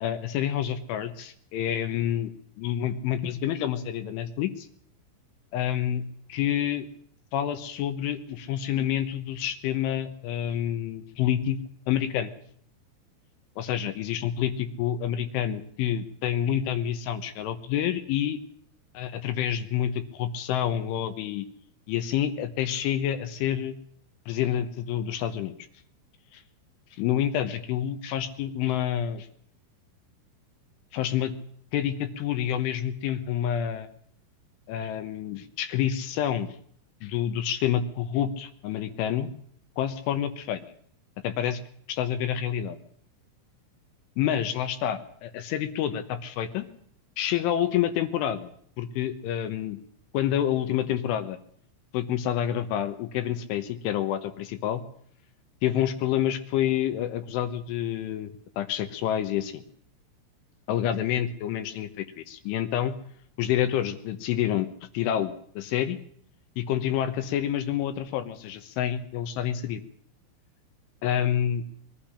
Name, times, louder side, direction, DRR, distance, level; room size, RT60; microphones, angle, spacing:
voice 1, 0.0-2.3 2.6-4.7 5.5-6.0 6.3-6.9 7.3-11.6 11.9-12.3 13.6-18.4 19.0-21.5 21.9-23.8 24.3-25.5 26.3-26.4 26.9-29.3 30.9-31.3 31.7-33.9 34.7-36.5 37.0-39.3 39.8-40.6 41.2-41.6 41.9-42.8 44.2-46.7 47.2-48.5 48.8-49.8 50.1-51.4 51.9-54.8 55.6-58.3 58.6-59.6 60.7-62.9 63.4-64.7 64.9-66.0 66.6-69.8 71.0-71.6, left 10 dB, 75° left, 10 dB, 3.4 m, -28 dB
22.0 x 12.0 x 10.0 m, 0.64 s
omnidirectional pair, 6.0 m